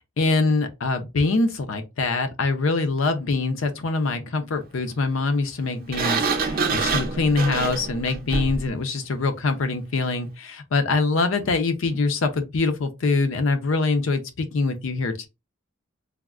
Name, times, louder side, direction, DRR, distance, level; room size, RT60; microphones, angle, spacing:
voice 1, 0.2-15.3, left 3 dB, 65° left, 0.5 m, -24 dB
Sliding door, 5.9-8.7, right 4 dB, 45° right, 0.5 m, -26 dB
3.4 x 2.0 x 2.3 m
head